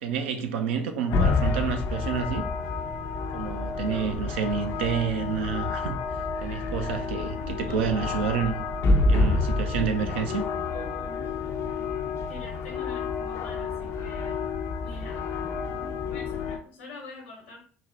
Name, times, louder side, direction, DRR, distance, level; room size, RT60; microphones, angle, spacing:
voice 1, 0.0-2.4 3.3-8.6 9.1-10.5, right 7 dB, 80° right, 0.4 m, -29 dB
sound 1, 1.1-16.6, left 3 dB, 55° left, 0.4 m, -28 dB
voice 2, 7.4-7.8 12.3-14.4 14.8-15.2 16.0-17.6, left 3 dB, 85° left, 1.0 m, -44 dB
3.8 x 2.1 x 2.6 m
hypercardioid pair, 55°, 6 cm